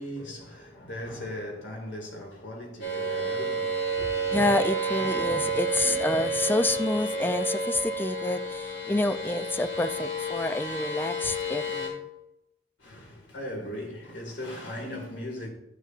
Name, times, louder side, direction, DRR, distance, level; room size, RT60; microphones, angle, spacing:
voice 1, 0.0-4.4 12.8-15.5, left 1 dB, 85° left, 2.2 m, -38 dB
sound 1, 2.8-11.9, right 2 dB, 70° left, 2.7 m, -30 dB
voice 2, 4.3-12.0, left 2 dB, 10° left, 0.3 m, -28 dB
11.5 x 6.4 x 2.5 m
head